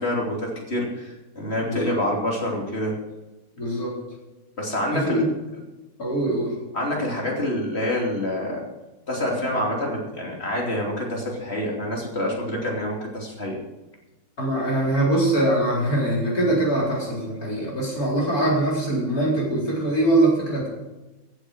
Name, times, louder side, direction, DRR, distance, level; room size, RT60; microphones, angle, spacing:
voice 1, 0.0-2.9 4.6-5.2 6.7-8.7 9.1-13.6, left 1 dB, 30° left, -1 dB, 3.1 m, -27 dB
voice 2, 1.6-2.0 3.6-3.9 4.9-5.3 6.0-6.5 14.4-20.7, right 1 dB, 50° left, -4 dB, 4.4 m, -22 dB
14.5 x 8.0 x 6.3 m, 1.1 s
omnidirectional pair, 2.1 m